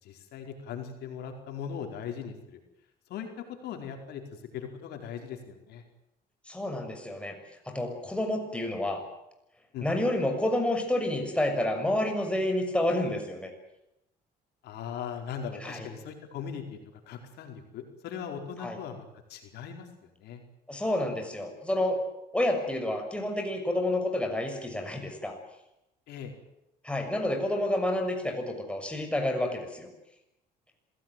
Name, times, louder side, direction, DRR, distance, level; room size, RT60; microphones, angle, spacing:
voice 1, 0.0-2.6 3.1-3.3 3.6-5.8 9.7-9.9 14.6-16.8 17.1-19.9 20.2-20.4 26.1-26.3, left 7 dB, 75° left, 3 dB, 4.7 m, -39 dB
voice 2, 6.5-7.3 7.6-9.0 9.8-13.5 15.6-15.9 18.6-18.8 20.7-22.0 22.3-25.3 26.8-29.9, left 1 dB, 5° left, 3 dB, 6.6 m, -29 dB
26.5 x 17.5 x 9.4 m, 0.89 s
cardioid pair, 110°, 17 cm